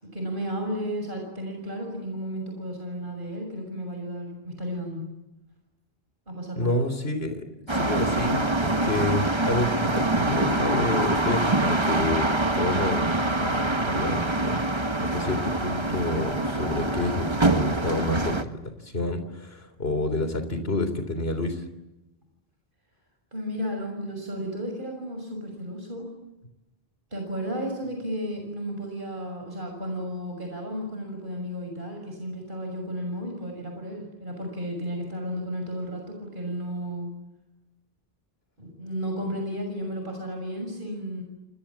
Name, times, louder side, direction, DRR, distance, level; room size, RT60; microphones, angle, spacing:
voice 1, 0.0-5.1 6.3-6.7 23.3-26.1 27.1-37.2 38.6-41.2, equal, 55° right, 2 dB, 6.8 m, -33 dB
voice 2, 6.6-7.4 7.7-14.6 15.0-21.6, left 2 dB, 70° left, 9 dB, 3.9 m, -29 dB
sound 1, 7.7-18.4, right 2 dB, 25° right, 1.8 m, -25 dB
29.0 x 27.5 x 7.5 m, 0.96 s
omnidirectional pair, 1.1 m